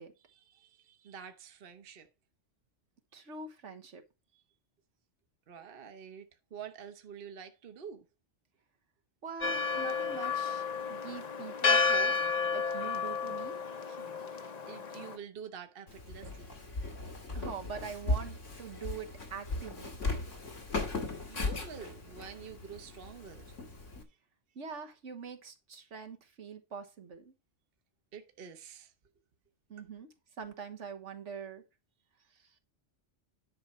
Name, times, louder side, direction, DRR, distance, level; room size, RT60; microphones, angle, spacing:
voice 1, 0.2-2.1 4.3-4.4 5.5-8.0 13.8-16.7 21.3-23.4 28.1-28.9, right 7 dB, 55° right, 1.1 m, -48 dB
voice 2, 3.1-4.0 9.2-13.6 17.3-20.0 24.5-27.3 29.7-31.6 32.3-32.5, right 6 dB, 75° right, 1.6 m, -44 dB
Church bell, 9.4-15.2, left 5 dB, 40° left, 0.8 m, -31 dB
Walk footsteps, 15.9-24.0, left 2 dB, 85° left, 2.3 m, -37 dB
10.5 x 5.8 x 4.2 m
omnidirectional pair, 1.2 m